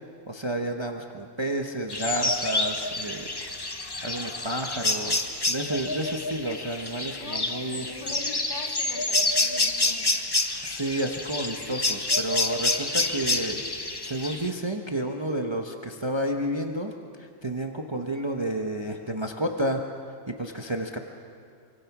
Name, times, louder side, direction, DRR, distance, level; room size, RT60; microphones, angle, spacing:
voice 1, 0.3-3.3 4.0-7.9 10.6-13.6 14.0-16.9 17.2-19.8 20.3-21.0, right 1 dB, 20° right, 3 dB, 1.2 m, -31 dB
sound 1, 1.9-14.5, left 2 dB, 20° left, 1.0 m, -28 dB
voice 2, 7.1-10.2, left 2 dB, 35° left, 1 dB, 2.5 m, -42 dB
27.5 x 25.5 x 6.1 m, 2.3 s
omnidirectional pair, 1.4 m